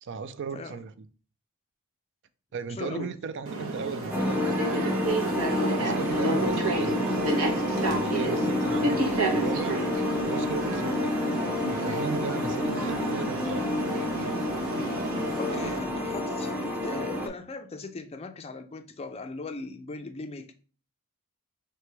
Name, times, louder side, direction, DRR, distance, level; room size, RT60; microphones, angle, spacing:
voice 1, 0.0-1.1 2.5-4.9 5.2-7.2 7.8-9.8 10.2-11.2 11.7-13.7, right 5 dB, 55° right, 0.4 m, -37 dB
voice 2, 2.7-3.1 15.4-20.5, left 3 dB, 25° left, 0.4 m, -39 dB
sound 1, 3.5-15.8, right 2 dB, 70° right, 0.9 m, -30 dB
sound 2, 4.1-17.3, left 1 dB, 10° right, 0.6 m, -29 dB
3.2 x 2.9 x 4.5 m
head